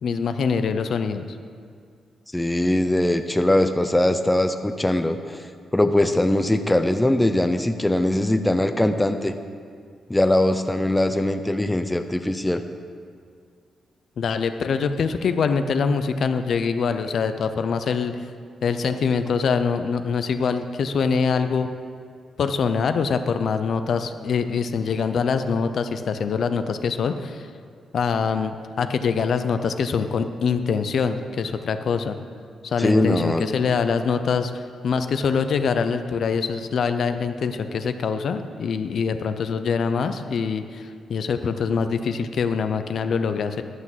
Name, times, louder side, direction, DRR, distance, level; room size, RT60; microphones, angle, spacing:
voice 1, 0.0-1.3 14.2-18.1 18.6-21.7 22.4-27.5 27.9-32.2 32.6-43.6, left 5 dB, 60° left, 9 dB, 0.6 m, -24 dB
voice 2, 2.3-5.5 5.7-9.3 10.1-12.6 32.8-33.4, left 1 dB, 10° left, 8 dB, 0.5 m, -21 dB
11.0 x 6.1 x 7.4 m, 2.1 s
cardioid pair, 120°, 0 cm